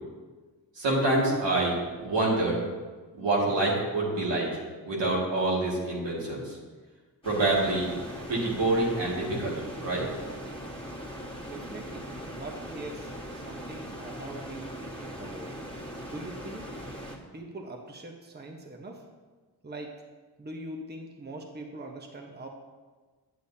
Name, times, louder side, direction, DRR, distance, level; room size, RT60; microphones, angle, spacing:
voice 1, 0.8-2.6 3.1-4.5 4.9-6.6 7.2-7.9 8.3-10.1, right 2 dB, 85° right, -5 dB, 2.3 m, -26 dB
sound 1, 7.2-17.2, equal, 15° left, 1.8 m, -40 dB
voice 2, 11.4-15.5 16.1-16.7 17.3-19.0 19.6-19.9 20.4-22.5, right 2 dB, 25° right, 2 dB, 1.0 m, -42 dB
8.4 x 8.1 x 2.8 m, 1.4 s
cardioid pair, 55°, 42 cm